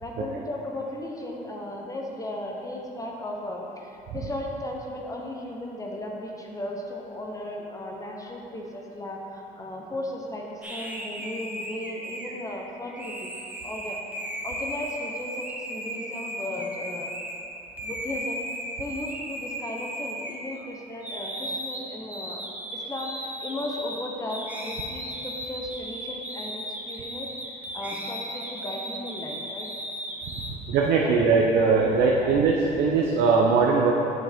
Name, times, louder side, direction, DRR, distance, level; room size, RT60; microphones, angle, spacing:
voice 1, 0.0-13.3 13.6-14.0 14.4-17.1 17.8-18.4 18.8-22.4 22.7-27.3 27.7-29.7 30.9-31.2 32.2-32.3, left 1 dB, 20° left, -1 dB, 0.8 m, -36 dB
sound 1, 10.6-17.4 17.8-20.7 21.0-30.5, right 1 dB, 10° right, 0.9 m, -36 dB
voice 2, 30.7-33.9, right 4 dB, 80° right, -1 dB, 0.7 m, -21 dB
7.2 x 6.2 x 3.5 m, 2.7 s
cardioid pair, 110°, 17 cm